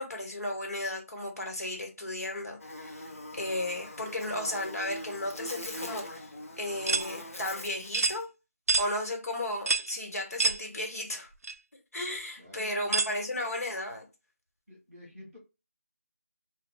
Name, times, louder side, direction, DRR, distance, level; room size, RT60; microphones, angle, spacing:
voice 1, 0.0-3.1 3.3-8.3 8.7-11.3 11.9-14.0, left 1 dB, 85° left, 1.1 m, -34 dB
Buzz, 2.6-8.2, left 1 dB, 65° left, 0.7 m, -42 dB
sound 1, 6.9-7.1 7.9-8.2 8.7-8.9 9.7-9.9 10.4-10.6 11.4-11.5 12.9-13.1, right 3 dB, 75° right, 0.4 m, -26 dB
voice 2, 12.4-13.0 14.7-15.4, equal, ahead, 0.5 m, -47 dB
2.2 x 2.1 x 3.7 m
figure-of-eight pair, 175°, 8 cm